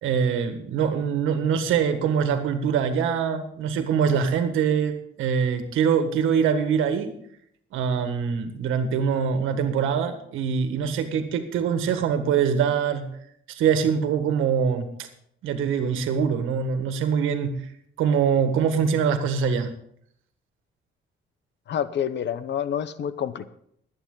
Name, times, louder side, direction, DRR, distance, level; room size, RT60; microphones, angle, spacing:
voice 1, 0.0-7.1 7.7-13.1 13.5-15.1 15.4-17.6 18.0-19.7, right 7 dB, 90° right, 8 dB, 1.7 m, -24 dB
voice 2, 21.7-23.5, left 9 dB, 65° left, 14 dB, 0.9 m, -28 dB
21.0 x 9.0 x 3.9 m, 0.69 s
cardioid pair, 90°, 20 cm